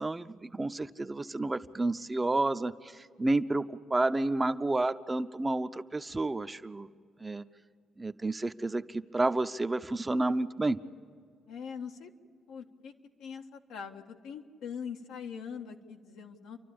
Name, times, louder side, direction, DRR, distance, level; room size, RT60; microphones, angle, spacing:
voice 1, 0.0-6.9 7.2-7.4 8.0-10.8, right 2 dB, 20° right, 10 dB, 0.7 m, -30 dB
voice 2, 11.5-12.1 12.5-12.9 13.2-16.6, left 7 dB, 90° left, 2 dB, 1.5 m, -42 dB
29.5 x 12.0 x 8.6 m, 2.2 s
cardioid pair, 90°, 0 cm